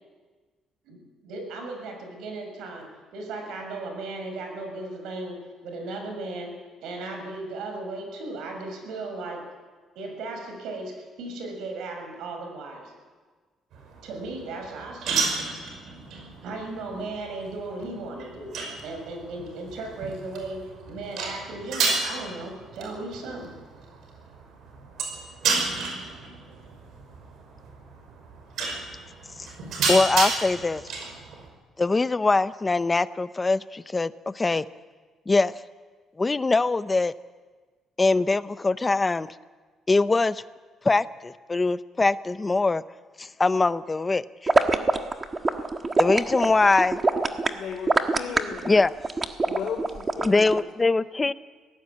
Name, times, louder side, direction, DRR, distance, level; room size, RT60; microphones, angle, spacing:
voice 1, 0.8-6.5 6.8-9.4 9.9-12.9 14.0-15.2 16.4-18.5 18.8-23.5, right 2 dB, 85° right, 3 dB, 6.5 m, -36 dB
sound 1, 13.7-31.5, right 4 dB, 70° right, 5.8 m, -32 dB
voice 2, 29.9-30.8 31.8-34.6 35.3-35.5 36.2-37.1 38.0-39.3 39.9-40.4 40.8-42.8 43.2-44.5 46.0-47.0 48.7-48.9 50.2-51.3, left 3 dB, 20° left, 15 dB, 0.6 m, -22 dB
sound 2, 44.5-50.6, right 3 dB, 20° right, 1.4 m, -23 dB
voice 3, 46.4-46.9 47.5-48.8 49.5-50.6, left 6 dB, 55° left, 0 dB, 2.9 m, -35 dB
23.5 x 17.5 x 8.6 m, 1.4 s
cardioid pair, 140°, 0 cm